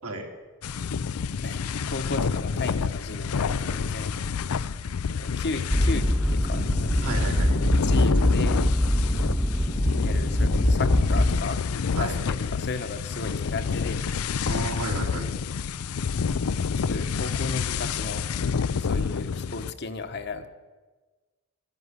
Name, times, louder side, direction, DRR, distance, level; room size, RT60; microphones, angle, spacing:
sound 1, 0.6-19.7, left 5 dB, 80° left, 0.5 m, -28 dB
voice 1, 1.4-4.1 5.2-7.2 7.8-8.6 10.0-11.6 12.0-14.1 16.7-18.2 18.6-20.5, left 3 dB, 50° left, 8 dB, 1.1 m, -35 dB
sound 2, 5.7-11.4, equal, ahead, 0.4 m, -23 dB
voice 2, 7.0-7.6 11.9-12.1 14.4-15.3, right 2 dB, 80° right, 2 dB, 3.0 m, -32 dB
12.5 x 11.0 x 9.7 m, 1.3 s
head